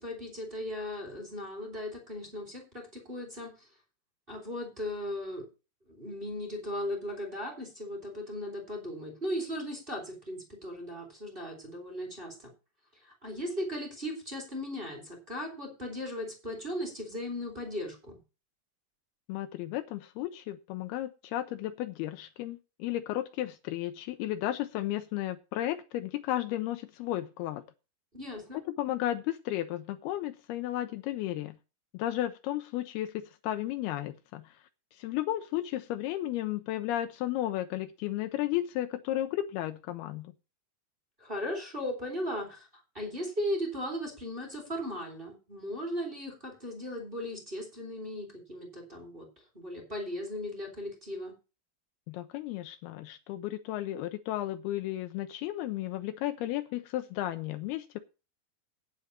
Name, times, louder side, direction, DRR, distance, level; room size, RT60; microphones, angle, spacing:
voice 1, 0.0-3.5 4.3-5.5 5.9-12.5 13.2-18.2 28.1-28.6 41.2-42.7 42.9-49.3 49.5-51.3, equal, 15° right, 1 dB, 3.7 m, -37 dB
voice 2, 19.3-27.6 28.7-31.6 31.9-34.6 34.9-40.3 52.1-58.0, left 14 dB, 80° left, 9 dB, 2.5 m, -34 dB
9.4 x 6.5 x 7.2 m, 0.31 s
omnidirectional pair, 4.7 m